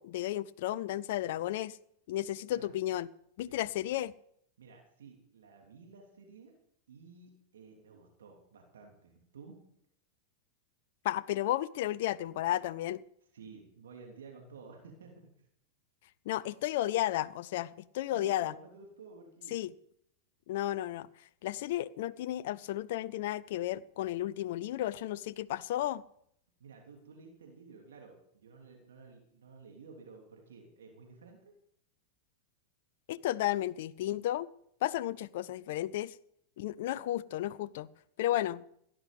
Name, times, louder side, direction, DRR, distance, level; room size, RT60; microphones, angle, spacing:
voice 1, 0.0-1.8 2.1-3.1 3.4-4.1 11.0-13.0 16.3-18.5 19.5-19.7 20.5-21.1 21.4-26.0 33.1-34.5 34.8-36.2 36.6-37.9 38.2-38.6, left 14 dB, 60° left, 0.5 m, -33 dB
voice 2, 4.6-6.5 6.9-9.6 13.3-15.3 18.1-19.6 26.6-31.5, right 4 dB, 75° right, 3.1 m, -53 dB
16.5 x 11.0 x 5.4 m
hypercardioid pair, 95°, 0 cm